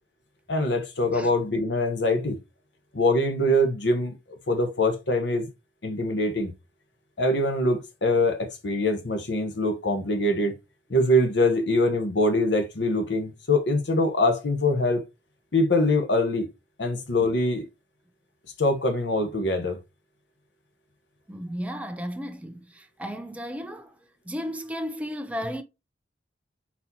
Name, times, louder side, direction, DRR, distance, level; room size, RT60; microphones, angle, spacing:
voice 1, 0.5-2.4 2.9-5.5 5.8-6.5 7.2-10.5 10.9-15.0 15.5-16.5 16.8-17.6 18.6-19.8, left 1 dB, 80° left, 1.0 m, -23 dB
voice 2, 21.3-24.0 24.3-25.6, equal, 10° right, 0.5 m, -34 dB
4.2 x 4.1 x 2.7 m
head